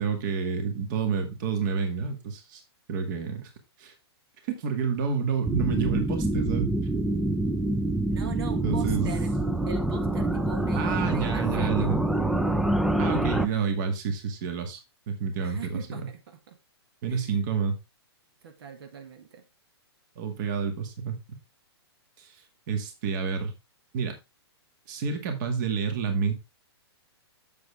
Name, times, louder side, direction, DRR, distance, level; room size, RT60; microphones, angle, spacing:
voice 1, 0.0-2.6 2.9-3.5 3.8-3.9 4.4-6.7 8.6-9.1 10.8-12.0 13.0-14.8 15.1-16.1 17.0-17.8 20.2-21.2 22.2-22.4 22.7-23.5 23.9-24.2 24.9-26.3, right 6 dB, 45° right, 2.1 m, -29 dB
sound 1, 5.4-13.5, right 1 dB, ahead, 0.4 m, -26 dB
voice 2, 8.1-9.4 9.7-12.0 15.4-16.6 17.1-17.4 18.4-19.4, right 7 dB, 65° right, 1.6 m, -41 dB
7.6 x 7.2 x 3.5 m
hypercardioid pair, 140°, 14 cm